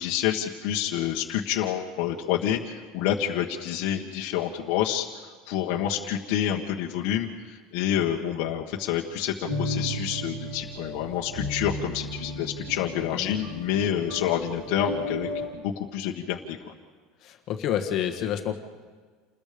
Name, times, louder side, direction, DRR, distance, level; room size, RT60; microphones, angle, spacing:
voice 1, 0.0-5.1 5.5-16.7, left 10 dB, 50° left, -1 dB, 1.5 m, -28 dB
sound 1, 9.5-15.5, left 1 dB, 60° right, 5.2 m, -34 dB
voice 2, 17.2-18.5, left 10 dB, 35° left, 5 dB, 1.6 m, -29 dB
29.0 x 21.0 x 5.2 m, 1.5 s
cardioid pair, 180°, 0 cm